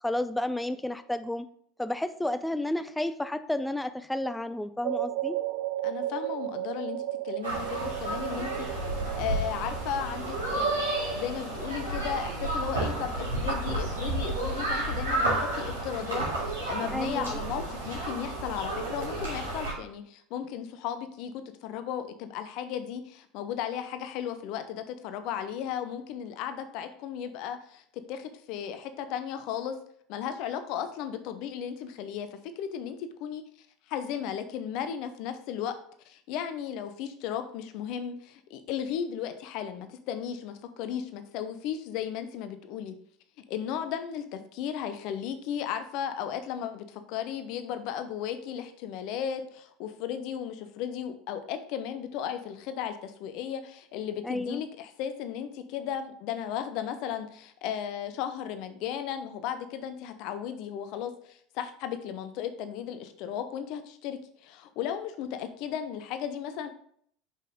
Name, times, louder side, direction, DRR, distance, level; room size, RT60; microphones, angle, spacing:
voice 1, 0.0-1.5 1.8-5.4 16.9-17.4 54.2-54.6, left 1 dB, 5° left, 11 dB, 0.5 m, -31 dB
sound 1, 4.8-11.3, right 14 dB, 55° right, 0.4 m, -35 dB
voice 2, 5.8-8.8 9.1-10.8 11.1-29.8 30.1-33.4 33.9-35.8 36.1-43.0 43.5-66.7, left 9 dB, 55° left, 9 dB, 0.6 m, -35 dB
sound 2, 7.4-19.7, right 2 dB, 80° right, 2.3 m, -31 dB
5.4 x 5.4 x 3.7 m, 0.62 s
figure-of-eight pair, 70°, 0 cm